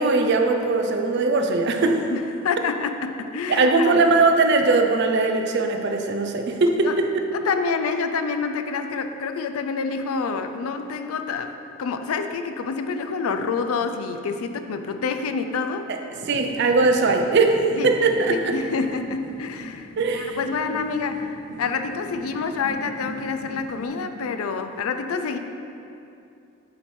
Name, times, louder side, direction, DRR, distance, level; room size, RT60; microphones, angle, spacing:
voice 1, 0.0-2.1 3.5-7.1 15.9-16.0 16.3-18.6 20.0-20.4, right 3 dB, 55° right, 5 dB, 0.4 m, -20 dB
voice 2, 2.1-4.1 6.8-7.0 7.3-15.9 17.8-17.9 18.3-25.4, left 5 dB, 90° left, 8 dB, 0.4 m, -27 dB
sound 1, 16.1-23.9, equal, 50° left, 0.7 m, -40 dB
8.3 x 3.2 x 4.3 m, 2.7 s
head